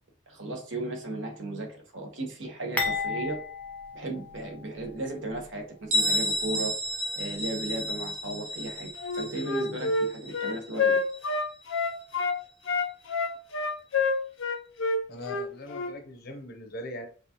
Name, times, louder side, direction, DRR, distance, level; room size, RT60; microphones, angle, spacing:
voice 1, 0.3-3.4 3.9-6.8 7.2-11.0, right 2 dB, 65° right, 2 dB, 1.0 m, -35 dB
sound 1, 2.8-4.9 5.3-5.4 6.3-6.5, left 4 dB, 10° left, 0.6 m, -33 dB
Bell, 5.9-11.4, left 1 dB, 40° right, 1.2 m, -31 dB
Wind instrument woodwind instrument, 9.0-12.4 12.7-15.9, left 3 dB, 70° left, 0.5 m, -27 dB
voice 2, 15.1-17.1, left 1 dB, 50° left, 4 dB, 0.9 m, -40 dB
4.7 x 2.4 x 2.9 m, 0.40 s
head